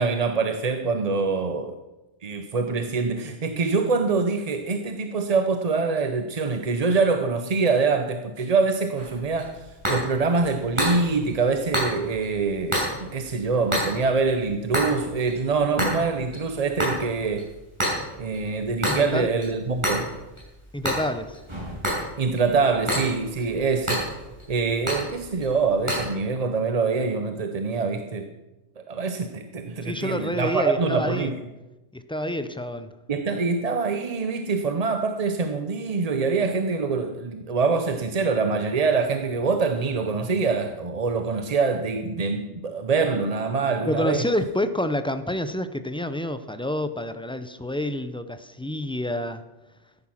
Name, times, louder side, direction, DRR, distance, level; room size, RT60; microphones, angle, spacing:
voice 1, 0.0-1.8 2.2-9.6 9.9-17.5 18.2-20.1 22.2-24.1 24.5-28.3 28.9-31.3 33.1-44.3, right 4 dB, 40° right, 7 dB, 0.7 m, -24 dB
sound 1, 9.0-26.1, equal, 25° right, 5.8 m, -31 dB
voice 2, 18.9-19.3 20.7-21.4 29.8-31.3 31.9-33.0 43.8-49.4, left 1 dB, 5° left, 11 dB, 0.5 m, -28 dB
14.0 x 10.5 x 5.9 m, 1.0 s
omnidirectional pair, 1.2 m